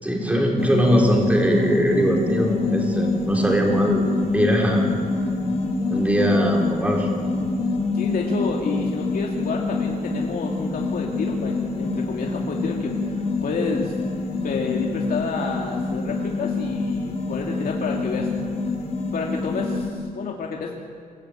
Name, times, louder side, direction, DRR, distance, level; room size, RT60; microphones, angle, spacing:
voice 1, 0.0-4.1 4.3-4.9 5.9-7.1, equal, 10° right, 0 dB, 4.4 m, -21 dB
sound 1, 0.6-19.9, left 3 dB, 50° left, 4.1 m, -26 dB
voice 2, 7.9-14.0 14.4-18.3 19.1-20.7, left 4 dB, 80° left, 0 dB, 2.6 m, -29 dB
26.0 x 17.0 x 9.2 m, 2.5 s
wide cardioid pair, 160°, 15 cm